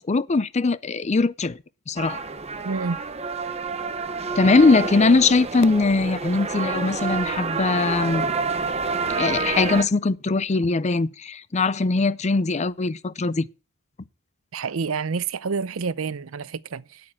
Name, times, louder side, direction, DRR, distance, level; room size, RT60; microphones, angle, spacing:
voice 1, 0.0-1.6 1.9-2.2 4.4-8.3 9.2-13.5, left 3 dB, 35° left, 0.5 m, -21 dB
sound 1, 2.0-9.8, right 4 dB, 30° right, 1.0 m, -28 dB
voice 2, 2.6-3.0 14.5-17.0, right 5 dB, 90° right, 0.6 m, -28 dB
8.7 x 8.5 x 8.7 m
head